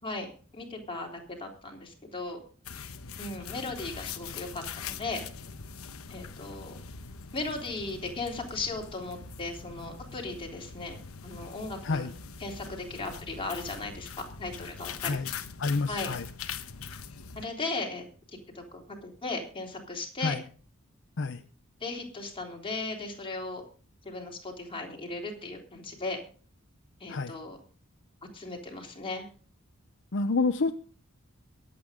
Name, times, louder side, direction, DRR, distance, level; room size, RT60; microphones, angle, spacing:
voice 1, 0.0-2.4 3.2-5.2 6.1-6.8 7.3-12.1 12.4-14.1 14.4-15.2 15.9-16.1 17.3-18.0 18.5-20.4 21.8-23.6 24.0-26.2 27.0-27.6 28.3-29.3, left 3 dB, 25° left, 0 dB, 3.5 m, -37 dB
sound 1, 2.6-17.4, left 6 dB, 85° left, 1.1 m, -42 dB
voice 2, 15.6-16.3 20.2-20.4 21.2-21.4 27.1-27.3 30.1-30.7, left 3 dB, 60° left, 9 dB, 0.7 m, -28 dB
23.0 x 8.5 x 3.7 m, 0.41 s
head